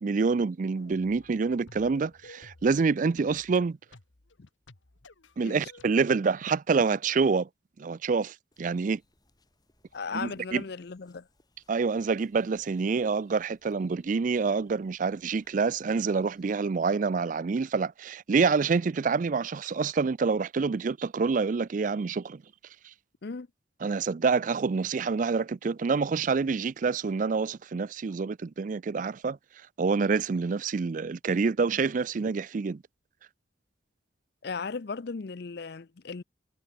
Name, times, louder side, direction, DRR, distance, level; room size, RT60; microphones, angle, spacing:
voice 1, 0.0-3.8 5.4-7.5 7.8-9.0 10.1-10.6 11.7-22.4 23.8-29.4 29.8-32.8, right 4 dB, 45° right, 0.4 m, -27 dB
sound 1, 0.7-5.9, left 2 dB, 80° left, 1.7 m, -54 dB
sound 2, 8.5-16.5, left 1 dB, 20° left, 6.5 m, -69 dB
voice 2, 9.9-11.3 23.2-23.5 34.4-36.2, left 4 dB, 55° left, 0.6 m, -36 dB
head